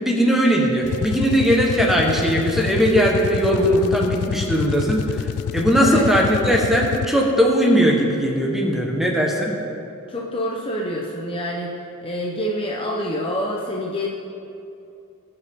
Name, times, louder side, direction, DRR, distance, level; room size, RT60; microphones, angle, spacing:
voice 1, 0.0-5.3 5.5-9.5, equal, ahead, -1 dB, 1.3 m, -19 dB
sound 1, 0.8-7.4, left 7 dB, 80° left, 0.3 m, -28 dB
voice 2, 5.8-6.1 10.1-14.1, equal, 25° left, -2 dB, 0.9 m, -27 dB
19.5 x 6.9 x 3.8 m, 2.7 s
head